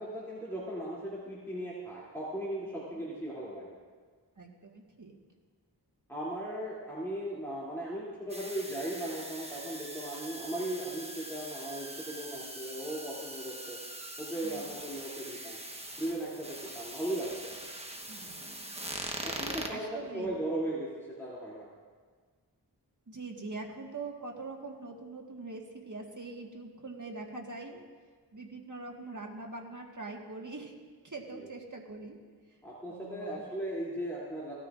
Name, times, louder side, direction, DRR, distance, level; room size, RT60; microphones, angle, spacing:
voice 1, 0.0-3.8 6.1-13.8 14.2-15.6 16.0-17.5 19.2-21.7 31.3-31.5 32.6-34.5, right 1 dB, 5° left, -8 dB, 2.8 m, -37 dB
voice 2, 4.4-5.1 14.4-14.8 18.1-18.9 19.7-20.4 23.1-27.8 28.3-30.7 31.0-32.2 32.9-33.4, right 3 dB, 45° right, 0 dB, 1.7 m, -43 dB
sound 1, 8.3-19.7, right 1 dB, 15° right, 1.1 m, -42 dB
17.5 x 13.0 x 2.5 m, 1.5 s
wide cardioid pair, 50°, 41 cm